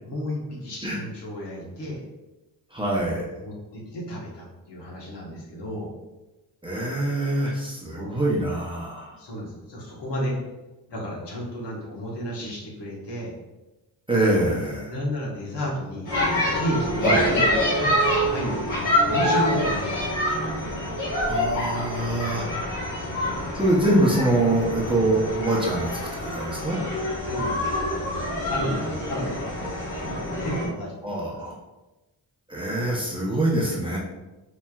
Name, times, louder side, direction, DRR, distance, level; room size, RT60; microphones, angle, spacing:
voice 1, 0.0-2.0 3.4-5.9 7.9-8.2 9.2-10.4 10.9-13.3 14.9-16.1 16.5-18.6 19.0-20.9 23.0-23.3 26.8-29.9 30.4-31.4, equal, 65° left, -3 dB, 1.3 m, -33 dB
voice 2, 2.7-3.3 6.6-9.2 14.1-14.9 17.0-17.3 21.3-22.5 23.5-25.9 26.2-26.8 31.0-31.5 32.5-34.0, right 1 dB, 10° right, -5 dB, 0.7 m, -24 dB
sound 1, 16.1-30.7, left 1 dB, 45° left, 1.3 m, -26 dB
4.3 x 3.1 x 2.3 m, 1.1 s
wide cardioid pair, 100°, 44 cm